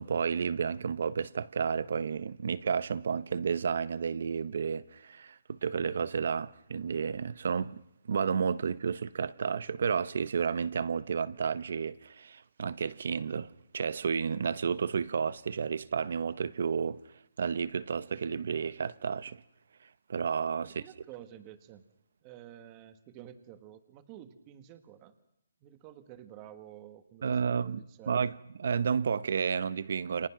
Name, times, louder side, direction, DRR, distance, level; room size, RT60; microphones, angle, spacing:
voice 1, 0.0-7.8 8.1-17.0 17.4-19.4 20.1-20.8 27.2-30.3, right 6 dB, 50° right, 0.9 m, -31 dB
voice 2, 20.6-21.8 22.2-25.1 25.6-28.3, right 11 dB, 15° right, 1.5 m, -50 dB
29.5 x 27.5 x 6.0 m
hypercardioid pair, 175°, 0 cm